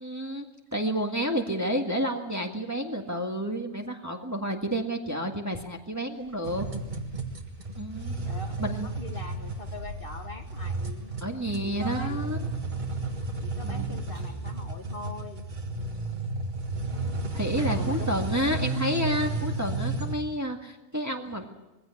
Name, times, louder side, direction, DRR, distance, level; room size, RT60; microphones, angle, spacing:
voice 1, 0.0-0.5 0.7-6.7 7.8-8.1 8.6-8.9 11.2-12.4 13.6-13.9 17.3-21.4, equal, 15° right, 2 dB, 1.8 m, -30 dB
sound 1, 6.1-14.3, equal, 85° right, 4.8 m, -49 dB
sound 2, 6.4-20.2, right 3 dB, 35° right, 1.7 m, -33 dB
voice 2, 8.2-11.1 11.6-12.5 13.4-15.4 17.7-18.2, left 2 dB, 45° left, 3 dB, 2.0 m, -42 dB
sound 3, 8.2-18.6, left 1 dB, 25° left, 7.5 m, -54 dB
22.0 x 16.0 x 9.8 m, 1.0 s
omnidirectional pair, 1.4 m